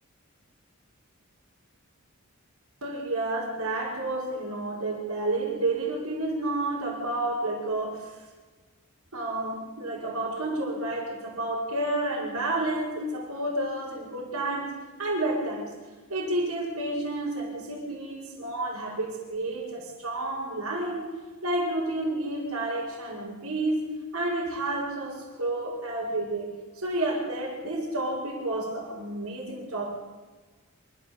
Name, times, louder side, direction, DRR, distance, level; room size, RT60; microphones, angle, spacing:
voice 1, 2.8-8.2 9.1-15.7 16.1-21.0 21.4-23.9 24.1-29.9, right 2 dB, 85° right, -7 dB, 6.3 m, -30 dB
27.0 x 15.5 x 8.5 m, 1.3 s
head